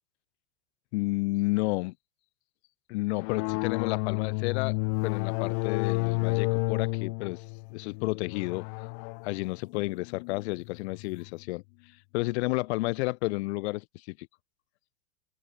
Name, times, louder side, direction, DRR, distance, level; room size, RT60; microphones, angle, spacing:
voice 1, 0.9-1.9 2.9-4.8 5.0-7.4 7.7-8.7 9.2-11.6 12.1-14.3, left 23 dB, 55° left, 0.9 m, -31 dB
sound 1, 3.2-11.3, left 35 dB, 35° left, 0.4 m, -31 dB
hypercardioid pair, 100°, 40 cm